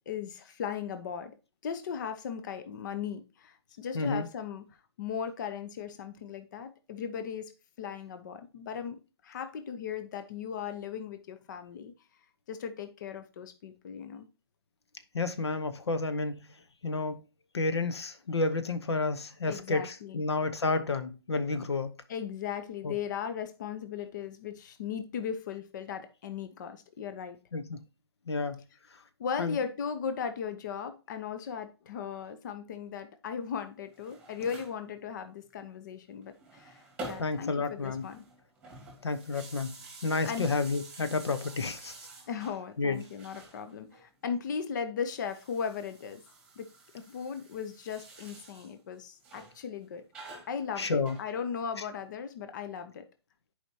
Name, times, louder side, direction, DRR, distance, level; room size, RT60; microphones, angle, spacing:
voice 1, 0.0-1.4 1.6-4.6 5.0-11.9 12.5-14.3 19.5-20.2 22.1-27.4 28.9-38.2 40.2-40.5 42.3-46.2 46.6-46.7 46.9-50.1 50.5-53.0, left 7 dB, 45° left, 0.8 m, -37 dB
voice 2, 3.9-4.3 15.1-16.4 16.8-17.2 17.5-21.9 22.8-22.9 27.5-27.8 28.3-28.6 29.4-29.5 37.2-38.1 39.0-39.8 40.0-41.9 42.8-43.0 50.8-51.2, left 3 dB, 90° left, 1.0 m, -30 dB
sound 1, 33.8-34.8 36.2-37.5 37.8-42.6 42.9-44.0 45.1-48.7 49.2-49.6 50.1-51.7, right 2 dB, 5° right, 2.4 m, -48 dB
10.0 x 5.0 x 2.8 m
hypercardioid pair, 150°, 14 cm